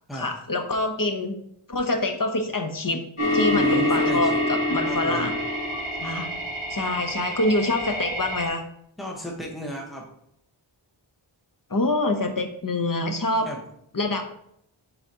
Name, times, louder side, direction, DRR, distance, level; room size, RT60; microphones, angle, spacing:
voice 1, 0.1-1.3 1.7-3.0 3.3-5.3 6.0-6.3 6.7-8.6 11.7-13.5 13.9-14.2, left 2 dB, 45° left, 5 dB, 1.0 m, -25 dB
sound 1, 3.2-8.5, left 1 dB, 90° left, 1.8 m, -26 dB
voice 2, 3.5-4.5 4.8-5.3 9.0-10.1 13.4-13.6, right 1 dB, ahead, -1 dB, 1.3 m, -33 dB
10.5 x 3.9 x 2.9 m, 0.73 s
wide cardioid pair, 50°, 48 cm